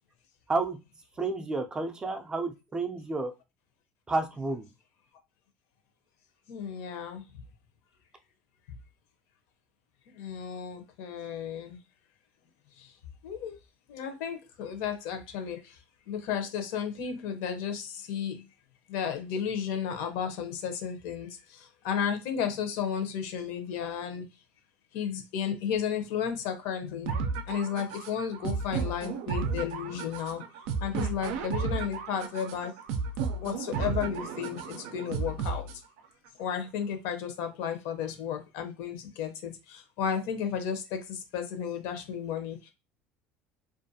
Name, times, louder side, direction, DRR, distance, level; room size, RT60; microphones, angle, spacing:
voice 1, 1.2-3.3 4.1-4.7, right 3 dB, 15° right, 5 dB, 0.4 m, -30 dB
voice 2, 6.5-7.2 8.7-8.8 10.1-11.8 12.8-12.9 13.2-13.6 13.9-15.8 16.1-18.4 18.9-24.2 24.9-30.4 30.8-32.7 33.4-35.7 36.4-42.7, left 7 dB, 75° left, 6 dB, 0.7 m, -33 dB
sound 1, 27.1-36.1, right 5 dB, 85° right, 0.4 m, -33 dB
2.4 x 2.3 x 2.6 m, 0.25 s
cardioid pair, 145°, 5 cm